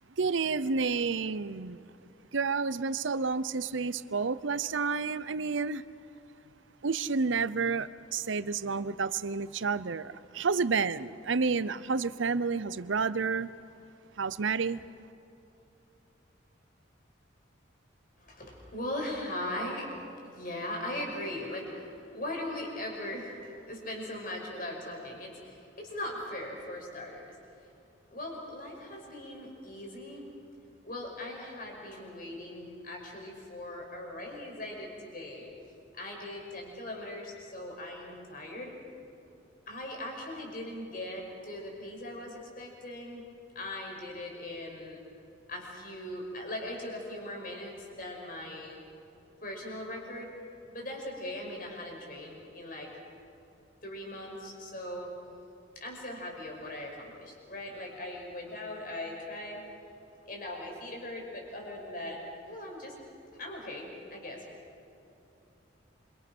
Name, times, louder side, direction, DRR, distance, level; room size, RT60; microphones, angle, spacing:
voice 1, 0.2-1.8 2.3-5.8 6.8-13.5 14.2-14.8, right 4 dB, 80° right, 0.7 m, -30 dB
voice 2, 18.2-27.3 27.6-27.7 28.1-30.3 30.8-35.5 35.9-38.7 39.7-43.3 43.5-45.0 45.5-48.8 49.4-50.3 50.7-52.9 53.8-55.1 55.8-59.6 60.3-62.2 62.5-62.9 63.3-64.4, left 1 dB, 45° left, 5.8 m, -39 dB
27.5 x 25.5 x 6.1 m
head